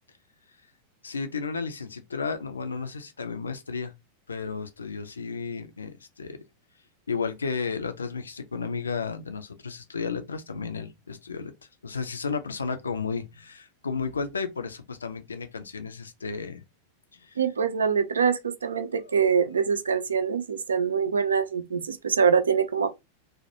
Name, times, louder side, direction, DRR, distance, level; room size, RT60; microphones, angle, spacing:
voice 1, 1.0-3.9 4.3-6.4 7.1-11.5 11.8-16.6 17.1-17.4 18.8-19.2, left 5 dB, 75° left, 0.4 m, -33 dB
voice 2, 17.4-22.9, right 6 dB, 70° right, 0.4 m, -24 dB
2.2 x 2.0 x 2.7 m
figure-of-eight pair, 90°, 0 cm